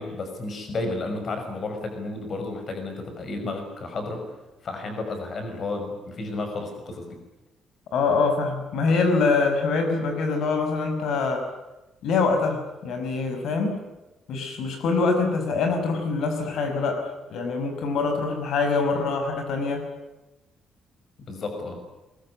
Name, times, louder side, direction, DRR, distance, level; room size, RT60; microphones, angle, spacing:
voice 1, 0.0-4.3 4.6-7.2 21.3-21.8, left 2 dB, 35° left, 6 dB, 5.9 m, -32 dB
voice 2, 7.9-11.4 12.0-13.8 14.3-19.8, left 4 dB, 65° left, 5 dB, 5.6 m, -24 dB
23.0 x 22.0 x 9.9 m, 1.0 s
cardioid pair, 180°, 0 cm